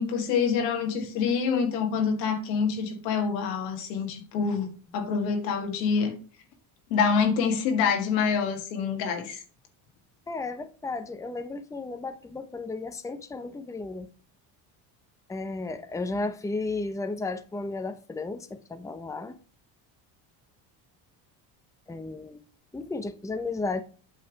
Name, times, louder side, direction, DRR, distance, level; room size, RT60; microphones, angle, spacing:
voice 1, 0.0-6.2 6.9-9.4, left 6 dB, 90° left, 1.7 m, -26 dB
voice 2, 10.3-14.1 15.3-19.4 21.9-22.4 22.7-23.8, left 3 dB, 5° left, 0.7 m, -34 dB
8.5 x 3.3 x 6.2 m
supercardioid pair, 80°, 49 cm